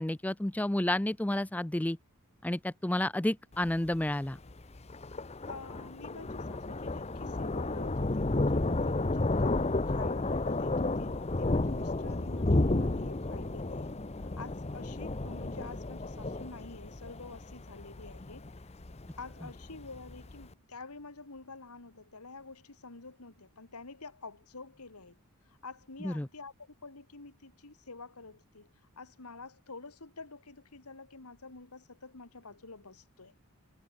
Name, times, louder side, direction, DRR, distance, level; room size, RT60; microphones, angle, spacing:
voice 1, 0.0-2.0 2.4-4.4 26.0-26.3, left 1 dB, 5° left, 0.4 m, -30 dB
Thunder, 3.5-20.5, left 2 dB, 30° left, 0.8 m, -32 dB
voice 2, 5.4-18.5 19.1-25.2 25.5-33.3, left 3 dB, 90° left, 2.2 m, -48 dB
head